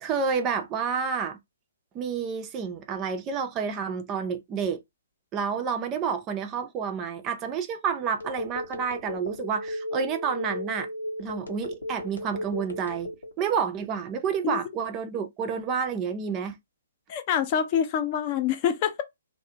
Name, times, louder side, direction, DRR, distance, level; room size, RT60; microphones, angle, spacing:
voice 1, 0.0-1.4 1.9-4.8 5.3-10.9 11.2-16.6, right 6 dB, 25° right, 0.4 m, -29 dB
Telephone, 8.2-13.4, left 1 dB, 85° left, 0.8 m, -34 dB
voice 2, 17.1-19.0, left 8 dB, 35° left, 0.5 m, -26 dB
2.3 x 2.1 x 2.8 m
figure-of-eight pair, 130°, 0 cm